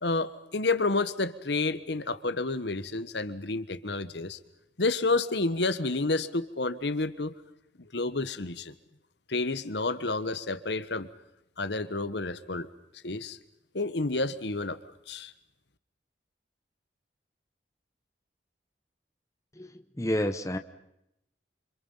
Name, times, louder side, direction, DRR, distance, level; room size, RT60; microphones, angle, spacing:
voice 1, 0.0-4.4 4.8-7.3 7.9-8.7 9.3-11.1 11.6-12.7 13.0-13.4 13.7-14.8 15.1-15.3, left 3 dB, 75° left, 14 dB, 1.3 m, -30 dB
voice 2, 19.5-20.6, left 1 dB, 15° left, 8 dB, 1.1 m, -30 dB
28.5 x 26.5 x 5.7 m, 0.82 s
head